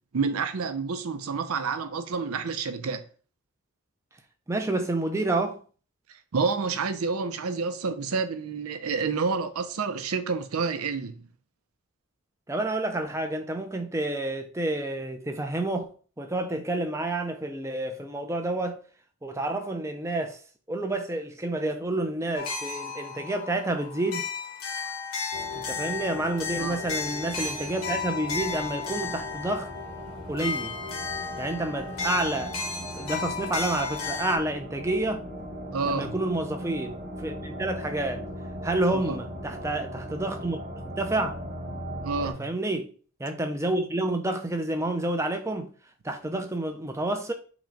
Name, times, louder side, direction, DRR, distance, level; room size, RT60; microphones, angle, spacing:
voice 1, 0.1-3.0 6.3-11.2 26.6-26.8 35.7-36.1 38.9-39.0 42.0-42.5, right 4 dB, 90° right, 0.5 m, -29 dB
voice 2, 4.5-5.6 12.5-18.8 19.2-20.4 20.7-24.3 25.5-29.7 30.3-30.8 31.4-32.5 32.8-35.2 35.9-38.2 38.6-40.6 41.0-41.4 42.2-42.9 43.2-45.7 46.0-47.3, right 2 dB, 15° right, 0.5 m, -29 dB
sound 1, 22.4-34.4, left 5 dB, 80° left, 1.0 m, -34 dB
sound 2, 25.3-42.3, equal, 40° right, 1.1 m, -39 dB
5.9 x 2.3 x 3.9 m
head